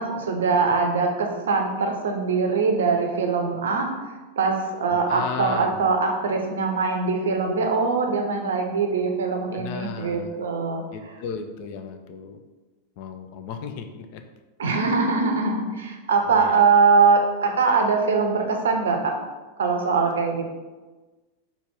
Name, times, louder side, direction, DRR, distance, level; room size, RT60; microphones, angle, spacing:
voice 1, 0.0-3.9 4.4-10.8 14.6-19.1 19.6-20.4, right 4 dB, 65° right, 3 dB, 0.5 m, -22 dB
voice 2, 4.9-5.8 9.5-10.4 10.9-12.4 13.0-14.2 14.6-14.9 16.3-16.6, left 6 dB, 45° left, 6 dB, 0.4 m, -35 dB
4.0 x 2.3 x 3.5 m, 1.2 s
figure-of-eight pair, 90°, 0 cm